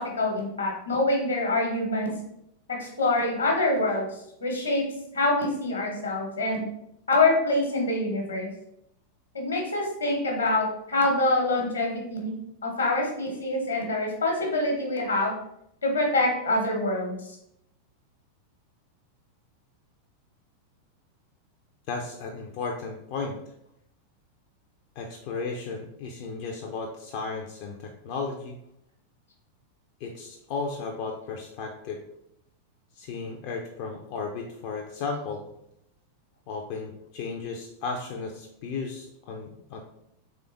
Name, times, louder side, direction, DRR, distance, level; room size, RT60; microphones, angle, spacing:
voice 1, 0.0-2.1 2.7-4.1 4.4-4.8 5.1-6.6 7.1-8.5 9.3-12.3 12.6-15.3 15.8-17.2, left 2 dB, 75° left, 0 dB, 1.2 m, -25 dB
voice 2, 21.9-23.4 25.0-28.6 30.0-32.0 33.0-35.5 36.5-39.8, left 4 dB, 45° left, 1 dB, 0.5 m, -34 dB
3.7 x 3.4 x 3.4 m, 0.79 s
figure-of-eight pair, 90°, 0 cm